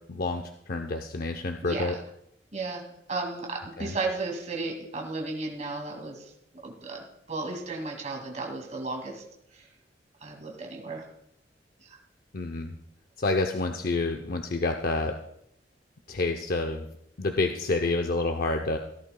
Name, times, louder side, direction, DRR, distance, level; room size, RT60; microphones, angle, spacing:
voice 1, 0.1-2.0 3.8-3.9 12.3-12.7 13.2-15.1 16.1-16.9 17.2-18.8, left 3 dB, 55° left, 5 dB, 0.6 m, -28 dB
voice 2, 1.6-2.0 2.5-2.8 3.1-6.3 6.6-7.0 7.3-9.2 9.5-9.7 10.2-11.0 11.8-12.0, right 3 dB, 40° right, 1 dB, 2.2 m, -34 dB
17.5 x 11.5 x 2.2 m, 0.77 s
head